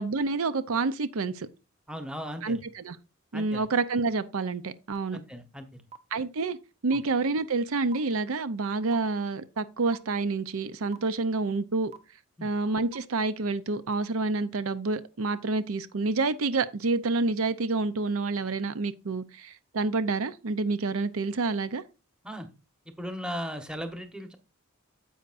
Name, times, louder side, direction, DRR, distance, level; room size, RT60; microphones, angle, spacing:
voice 1, 0.0-1.5 2.4-3.0 3.3-5.2 6.1-6.6 6.8-11.9 12.4-21.8, right 3 dB, 70° right, 0.6 m, -28 dB
voice 2, 1.9-2.6 3.3-3.7 5.1-5.8 6.9-7.0 12.4-12.5 22.2-22.5 23.0-24.4, equal, 5° right, 1.1 m, -37 dB
sound 1, 4.9-5.0 5.9-6.0 6.9-7.0 7.9-8.0 8.9-9.0 9.9-10.0 10.9-11.0 11.9-12.0 12.9-13.0 13.9-14.0, right 7 dB, 30° right, 0.7 m, -43 dB
10.0 x 7.9 x 2.5 m
head